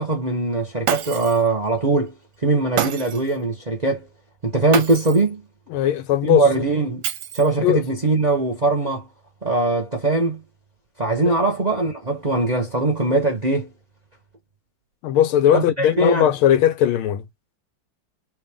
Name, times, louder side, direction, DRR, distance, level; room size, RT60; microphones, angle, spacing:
voice 1, 0.0-2.1 2.4-4.1 4.4-5.4 6.2-7.0 7.3-9.1 9.4-10.4 11.0-13.7 15.5-16.3, right 2 dB, 30° right, 0.7 m, -21 dB
Shatter, 0.9-1.5 2.8-3.3 4.7-5.3 7.0-7.7, right 9 dB, 65° right, 1.2 m, -27 dB
voice 2, 5.7-6.4 7.6-7.8 11.2-11.4 15.0-17.2, left 11 dB, 85° left, 1.5 m, -18 dB
3.6 x 2.5 x 3.4 m
omnidirectional pair, 2.3 m